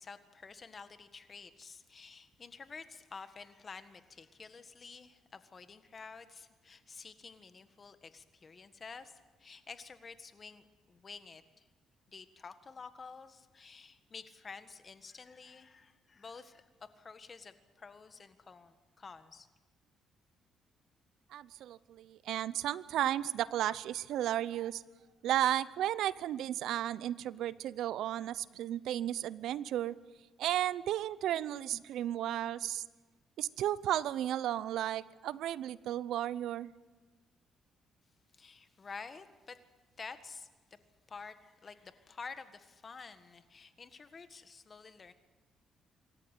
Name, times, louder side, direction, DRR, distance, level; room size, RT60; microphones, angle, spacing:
voice 1, 0.0-11.7 12.1-16.7 17.0-19.5 38.3-39.6 40.0-40.5 41.1-45.1, left 5 dB, 40° left, 10 dB, 1.7 m, -50 dB
voice 2, 21.3-24.8 25.2-30.0 30.4-32.8 33.4-36.7, right 12 dB, 80° right, 18 dB, 0.6 m, -34 dB
26.0 x 14.0 x 9.1 m, 1.2 s
cardioid pair, 90°, 0 cm